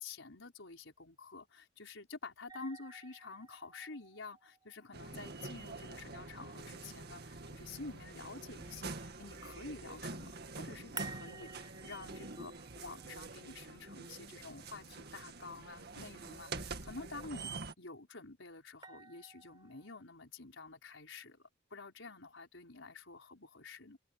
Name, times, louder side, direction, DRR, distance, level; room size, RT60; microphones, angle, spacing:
voice 1, 0.0-24.0, left 3 dB, 85° left, 4.7 m, -49 dB
sound 1, 2.5-7.5 11.0-15.1 18.8-20.0, right 4 dB, 20° right, 6.4 m, -53 dB
sound 2, 4.9-17.7, right 3 dB, 55° right, 2.1 m, -46 dB
head